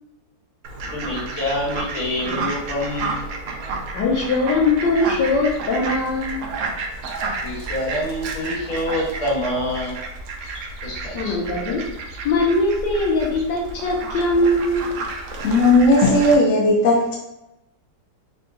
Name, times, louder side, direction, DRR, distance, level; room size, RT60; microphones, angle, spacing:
Fowl, 0.6-16.3, right 3 dB, 70° right, 0.7 m, -31 dB
voice 1, 0.9-3.3 7.4-10.0 10.8-11.3, left 1 dB, 45° left, -6 dB, 1.7 m, -26 dB
voice 2, 3.9-6.4 11.1-11.8 12.2-14.9, left 2 dB, 75° left, -3 dB, 1.4 m, -21 dB
voice 3, 15.4-17.1, left 1 dB, 60° left, -3 dB, 0.9 m, -15 dB
3.8 x 2.3 x 3.8 m, 0.94 s
omnidirectional pair, 1.9 m